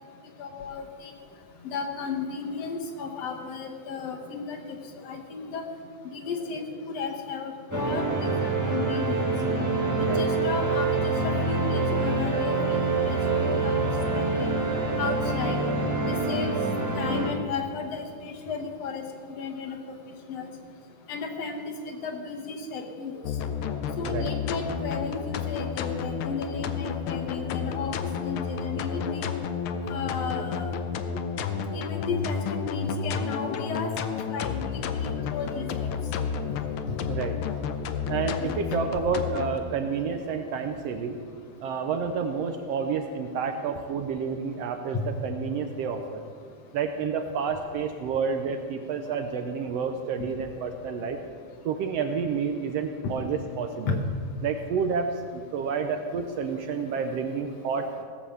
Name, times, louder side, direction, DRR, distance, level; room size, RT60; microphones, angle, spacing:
voice 1, 0.4-1.1 1.6-4.6 5.0-5.6 6.1-9.2 10.0-13.8 14.1-14.5 15.0-15.6 16.0-16.6 17.0-19.8 20.3-20.5 21.1-23.2 24.0-27.9 28.2-29.2 29.9-30.7 31.7-33.9 34.3-35.9 38.4-38.5 53.8-54.0, left 5 dB, 65° left, 3 dB, 2.1 m, -34 dB
sound 1, 7.7-17.3, right 3 dB, 20° right, 0.4 m, -26 dB
sound 2, 23.2-39.6, left 6 dB, 85° left, 1.1 m, -31 dB
voice 2, 38.1-41.2 41.6-46.2 46.7-51.2 51.6-54.0 54.4-57.9, right 5 dB, 75° right, 6 dB, 1.6 m, -29 dB
17.0 x 7.4 x 6.9 m, 2.1 s
omnidirectional pair, 3.3 m